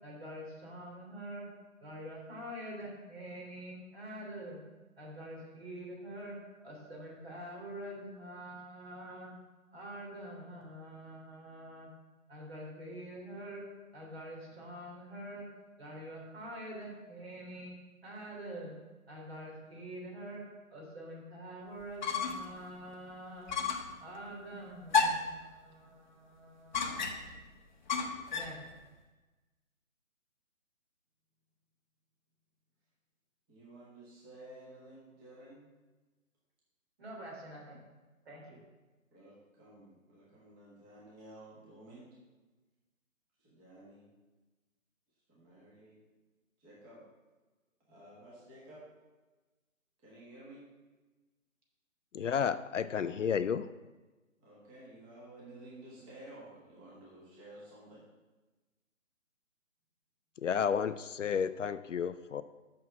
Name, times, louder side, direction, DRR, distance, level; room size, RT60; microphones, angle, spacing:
voice 1, 0.0-1.5 1.8-4.6 5.0-6.4 6.6-9.3 9.7-11.9 12.3-13.6 13.9-15.5 15.8-17.7 18.0-18.7 19.1-20.4 20.7-23.6 24.0-27.6 28.3-28.6 37.0-37.8 38.3-38.6, right 1 dB, 50° right, -2 dB, 3.3 m, -46 dB
sound 1, 21.8-22.5 22.9-23.0 23.5-23.9 24.9-25.4 26.7-27.4 27.9-28.6, left 5 dB, 35° left, 0.8 m, -31 dB
voice 2, 33.5-35.7 39.1-42.1 43.4-44.1 45.3-46.0 46.6-47.0 47.9-48.8 50.0-50.6 54.4-58.0, right 1 dB, 15° right, -6 dB, 1.5 m, -53 dB
voice 3, 52.1-53.7 60.4-62.4, left 7 dB, 65° left, 13 dB, 0.5 m, -32 dB
6.4 x 6.1 x 7.3 m, 1.2 s
figure-of-eight pair, 155°, 41 cm